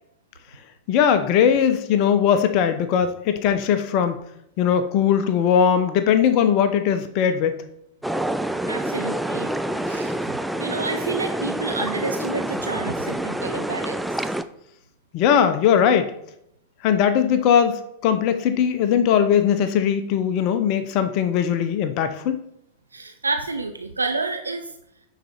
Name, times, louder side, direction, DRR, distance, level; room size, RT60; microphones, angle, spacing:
voice 1, 0.9-4.2 4.6-7.6 15.1-16.1 16.8-22.4, left 8 dB, 40° left, 10 dB, 0.6 m, -20 dB
sound 1, 8.0-14.4, right 1 dB, 5° right, 0.4 m, -27 dB
voice 2, 8.7-9.5 9.9-10.3 10.6-14.3 22.9-24.8, right 3 dB, 80° right, 6 dB, 0.5 m, -29 dB
9.0 x 4.0 x 4.4 m, 0.77 s
figure-of-eight pair, 90°, 0 cm